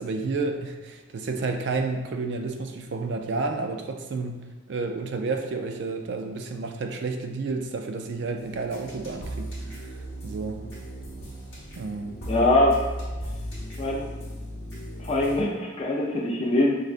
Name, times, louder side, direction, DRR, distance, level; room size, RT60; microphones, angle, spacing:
voice 1, 0.0-10.6 11.8-12.2, right 3 dB, 55° right, 5 dB, 0.3 m, -31 dB
sound 1, 8.4-15.4, equal, 60° left, 1.0 m, -36 dB
voice 2, 12.3-12.8 13.8-14.1 15.0-16.7, left 1 dB, 30° left, -2 dB, 0.4 m, -22 dB
4.9 x 2.2 x 2.4 m, 1.2 s
head